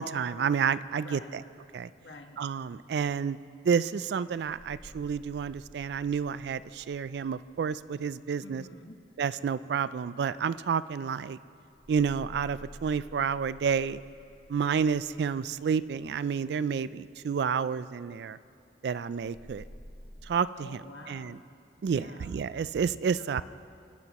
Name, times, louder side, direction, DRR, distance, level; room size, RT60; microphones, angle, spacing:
voice 1, 0.0-1.4 1.7-1.9 2.4-3.4 3.6-8.6 9.2-11.4 11.9-14.0 14.5-18.4 18.8-19.6 20.2-20.8 21.1-21.4 21.8-23.4, right 6 dB, 65° right, 16 dB, 0.3 m, -30 dB
voice 2, 1.0-1.4 2.0-2.4 8.4-9.0 20.5-21.4 21.8-22.4 23.2-23.4, left 2 dB, 80° left, 4 dB, 1.1 m, -48 dB
sound 1, 4.3-9.1 11.7-16.8 19.1-20.2, equal, 35° left, 2.0 m, -52 dB
25.5 x 10.5 x 3.0 m, 2.4 s
head